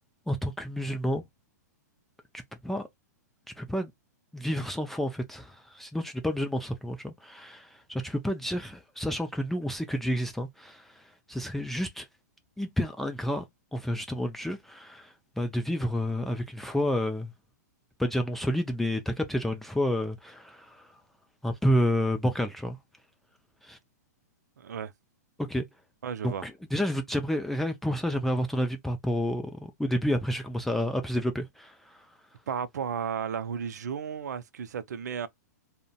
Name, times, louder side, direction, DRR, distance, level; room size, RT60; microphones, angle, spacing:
voice 1, 0.3-1.2 2.3-2.9 3.6-3.9 4.3-12.1 12.6-13.4 13.7-17.3 18.0-21.0 21.4-22.8 23.6-23.8 25.4-25.7 26.2-32.1, equal, 5° left, 0.4 m, -30 dB
voice 2, 24.6-24.9 26.0-26.4 32.5-35.3, right 7 dB, 70° right, 0.4 m, -33 dB
3.7 x 2.1 x 2.3 m
figure-of-eight pair, 110°, 9 cm